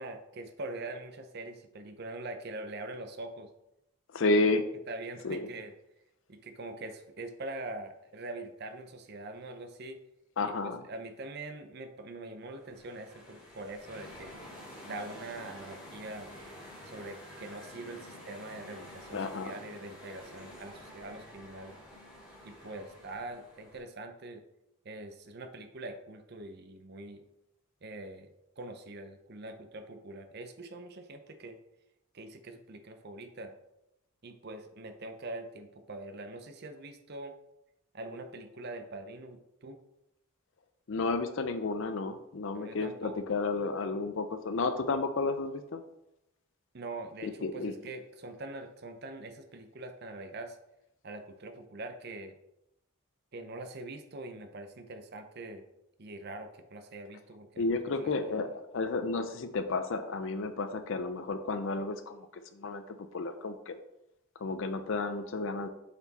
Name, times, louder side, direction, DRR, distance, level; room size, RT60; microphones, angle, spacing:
voice 1, 0.0-3.5 4.9-5.7 6.3-10.0 10.9-14.3 14.8-16.3 16.8-21.8 22.5-24.4 24.8-27.2 27.8-28.3 28.6-31.6 32.1-33.5 34.2-37.3 37.9-39.8 42.5-43.2 46.7-50.6 51.0-52.4 53.3-55.6 56.0-57.7 58.0-58.1, right 2 dB, 45° right, 6 dB, 0.6 m, -43 dB
voice 2, 4.1-4.6 5.2-5.5 10.4-10.8 19.1-19.5 40.9-45.8 47.2-47.7 57.6-62.3 62.5-63.7 64.4-65.7, left 3 dB, 60° left, 9 dB, 0.5 m, -32 dB
sound 1, 12.5-23.8, left 1 dB, 5° right, 1.9 m, -49 dB
7.0 x 4.3 x 4.1 m, 0.86 s
head